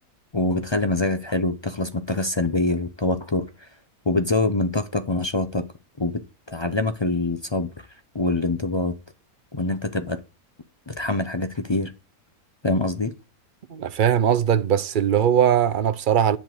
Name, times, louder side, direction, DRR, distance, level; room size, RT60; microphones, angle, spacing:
voice 1, 0.3-3.7 4.1-5.6 6.0-6.2 6.5-7.9 8.1-8.9 9.5-10.2 10.9-11.9 12.6-13.1, left 2 dB, 35° left, 0.4 m, -24 dB
voice 2, 13.7-16.4, right 9 dB, 60° right, 0.5 m, -20 dB
10.5 x 4.5 x 7.7 m
omnidirectional pair, 1.6 m